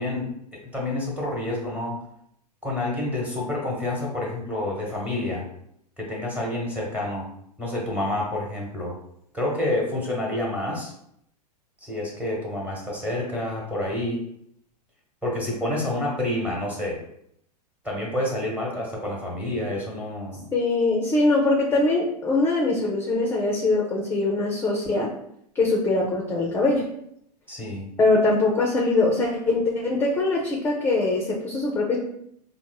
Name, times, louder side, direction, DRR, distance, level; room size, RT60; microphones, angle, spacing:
voice 1, 0.0-2.0 2.6-5.5 6.0-7.3 7.6-8.9 9.3-10.9 11.8-14.2 15.2-17.0 17.8-20.5 27.5-27.9, left 1 dB, 5° right, -3 dB, 1.1 m, -28 dB
voice 2, 20.5-25.1 25.5-26.8 28.0-32.0, left 2 dB, 10° left, -2 dB, 0.5 m, -22 dB
4.6 x 2.1 x 2.3 m, 0.74 s
hypercardioid pair, 105°, 21 cm